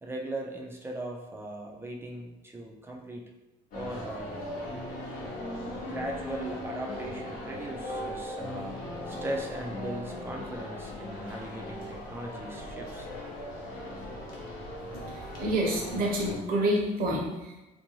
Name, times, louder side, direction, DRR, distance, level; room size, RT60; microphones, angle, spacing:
voice 1, 0.0-3.3 3.7-4.4 5.8-8.8 9.1-13.1, right 1 dB, 15° right, 0 dB, 0.5 m, -38 dB
sound 1, 3.7-16.4, left 1 dB, 55° left, 0.9 m, -38 dB
voice 2, 15.0-17.6, right 1 dB, 60° right, -1 dB, 0.8 m, -28 dB
2.6 x 2.2 x 3.0 m, 1.0 s
cardioid pair, 100°, 17 cm